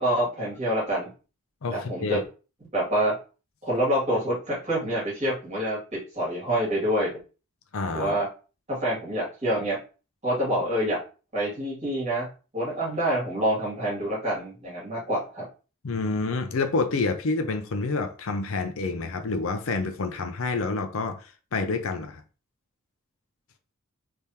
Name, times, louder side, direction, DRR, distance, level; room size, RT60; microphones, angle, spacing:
voice 1, 0.0-1.1 1.7-2.2 2.7-3.1 3.6-7.2 7.9-8.3 8.7-9.8 10.2-11.0 11.3-12.3 12.5-15.4, equal, 30° right, 2.0 m, -26 dB
voice 2, 1.6-2.2 7.7-8.2 15.8-22.2, left 3 dB, 65° left, 0.5 m, -28 dB
3.5 x 3.4 x 2.8 m
head